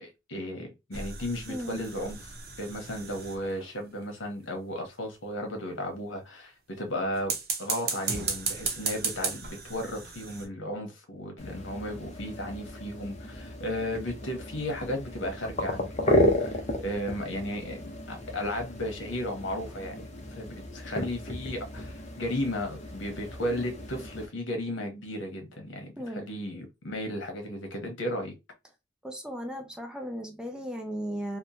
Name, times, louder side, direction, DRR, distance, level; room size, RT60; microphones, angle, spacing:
voice 1, 0.0-7.3 7.6-20.0 20.3-25.9 26.2-28.3, left 1 dB, 75° left, 0.9 m, -35 dB
sound 1, 0.9-3.8 7.2-10.5, right 5 dB, 50° right, 0.7 m, -35 dB
voice 2, 1.5-1.9 26.0-26.3 29.0-31.4, equal, 5° right, 0.4 m, -36 dB
sound 2, 11.4-24.3, left 1 dB, 35° left, 0.7 m, -33 dB
2.9 x 2.1 x 2.5 m
head